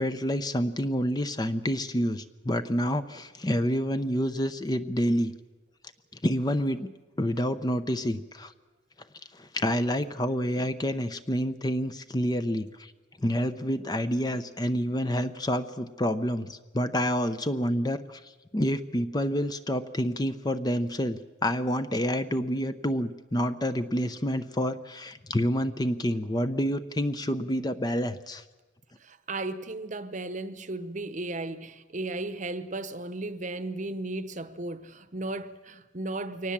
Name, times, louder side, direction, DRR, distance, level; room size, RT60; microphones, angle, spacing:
voice 1, 0.0-5.3 6.2-6.9 7.2-8.5 9.4-12.9 13.2-18.2 18.5-28.4, equal, 20° left, 0.6 m, -28 dB
voice 2, 29.0-36.5, right 2 dB, 40° right, 0.9 m, -35 dB
23.0 x 19.0 x 7.4 m
head